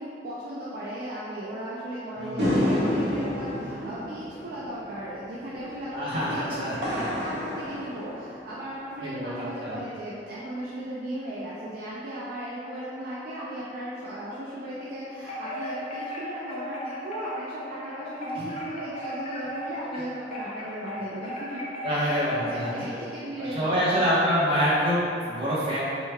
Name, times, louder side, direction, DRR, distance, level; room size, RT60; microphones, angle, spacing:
voice 1, 0.0-21.6 21.9-24.0, right 1 dB, 55° right, -8 dB, 0.4 m, -36 dB
voice 2, 2.2-2.6 5.9-7.1 9.0-9.8 18.3-18.4 21.8-22.9 23.4-25.8, equal, 30° right, -9 dB, 0.9 m, -26 dB
sound 1, 2.4-8.9, left 1 dB, 75° right, 0.7 m, -30 dB
Wind chime, 15.2-22.6, left 1 dB, 40° left, 0.5 m, -36 dB
3.2 x 3.1 x 2.2 m, 2.5 s
head